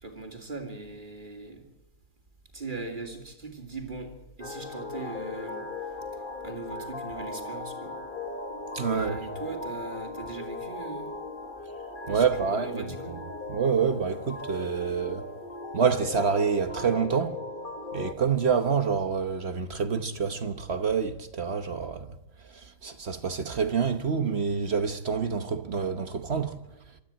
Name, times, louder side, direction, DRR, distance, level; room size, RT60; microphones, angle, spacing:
voice 1, 0.0-1.6 2.5-5.6 6.4-8.0 8.9-11.1 12.0-13.2, right 3 dB, 35° right, 3.0 m, -39 dB
sound 1, 4.4-18.1, left 2 dB, 35° left, 1.7 m, -38 dB
voice 2, 8.7-9.3 12.1-12.8 13.1-13.2 13.5-15.2 15.7-17.4 17.9-22.1 22.4-26.6, right 6 dB, 50° right, 1.2 m, -27 dB
24.5 x 13.0 x 8.8 m
omnidirectional pair, 1.5 m